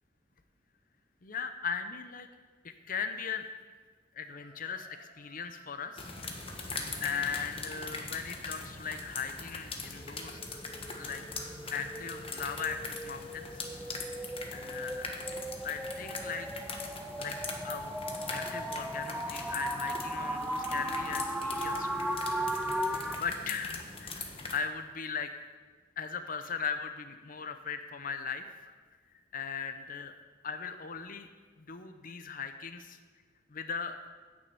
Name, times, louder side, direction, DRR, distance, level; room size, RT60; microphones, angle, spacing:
voice 1, 1.2-2.3 2.6-3.5 4.1-6.1 6.8-10.6 11.0-11.2 11.7-13.5 14.5-15.3 15.6-16.6 17.2-17.3 17.6-17.9 18.3-22.1 22.6-25.3 26.0-28.7 29.3-30.1 30.4-31.3 31.6-33.0 33.5-34.0, left 6 dB, 50° left, 8 dB, 0.7 m, -38 dB
sound 1, 4.3-6.4, right 1 dB, 45° right, 2.2 m, -60 dB
sound 2, 6.0-24.6, left 3 dB, 30° left, 1.2 m, -42 dB
sound 3, 10.0-23.2, right 1 dB, 5° right, 0.4 m, -37 dB
10.5 x 6.2 x 8.4 m, 1.4 s
head